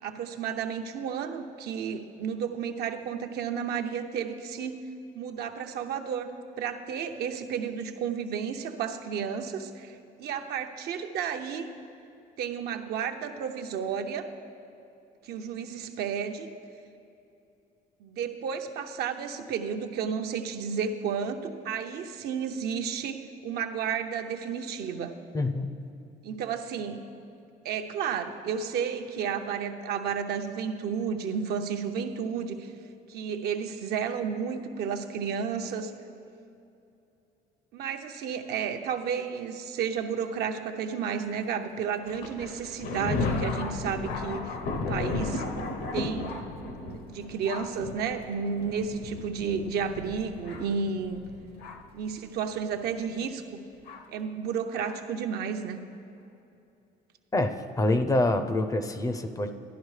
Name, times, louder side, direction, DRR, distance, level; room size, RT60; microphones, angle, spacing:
voice 1, 0.0-4.8 5.1-6.3 6.6-11.7 12.4-14.3 15.2-16.5 18.0-25.1 26.2-27.1 27.6-32.7 33.1-35.9 37.7-45.4 45.9-46.4 46.8-51.2 51.9-53.6 54.1-55.8, right 7 dB, 70° right, 6 dB, 0.7 m, -32 dB
voice 2, 25.3-25.7 57.3-59.5, left 2 dB, 20° left, 8 dB, 0.5 m, -26 dB
Thunder, 42.1-52.0 52.8-52.9 53.9-54.0 54.8-54.9, left 3 dB, 70° left, 0.8 m, -34 dB
12.0 x 10.5 x 3.2 m, 2.7 s
cardioid pair, 110°, 17 cm